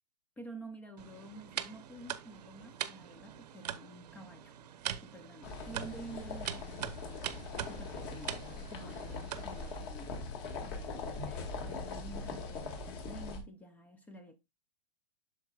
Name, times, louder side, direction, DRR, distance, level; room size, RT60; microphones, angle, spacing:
voice 1, 0.4-4.5 5.0-7.4 7.6-10.2 10.6-14.4, right 2 dB, 10° left, 0.6 m, -50 dB
sound 1, 1.0-9.8, right 10 dB, 85° right, 1.0 m, -43 dB
sound 2, 5.4-13.4, left 3 dB, 40° left, 2.1 m, -41 dB
8.4 x 6.9 x 2.4 m
supercardioid pair, 165°, 20 cm